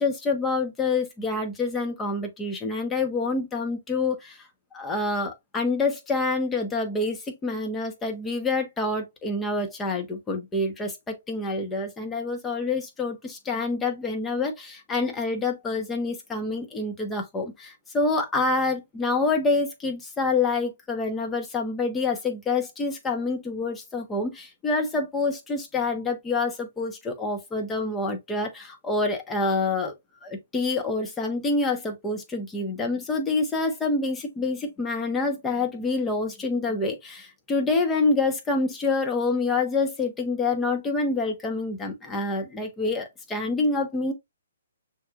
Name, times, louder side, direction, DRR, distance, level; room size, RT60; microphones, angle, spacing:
voice 1, 0.0-4.4 4.7-29.9 30.2-44.1, left 3 dB, 15° left, 1.2 m, -27 dB
6.1 x 3.4 x 2.5 m
figure-of-eight pair, 125°, 0 cm